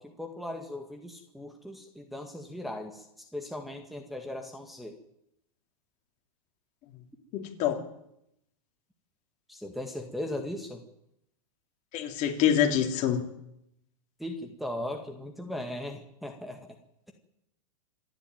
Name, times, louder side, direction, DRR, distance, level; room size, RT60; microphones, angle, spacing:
voice 1, 0.0-5.0 9.5-10.8 14.2-16.8, left 1 dB, ahead, 2 dB, 1.9 m, -38 dB
voice 2, 7.3-7.8 11.9-13.2, left 9 dB, 40° left, 4 dB, 3.6 m, -26 dB
27.0 x 11.5 x 9.2 m, 0.79 s
hypercardioid pair, 135°, 19 cm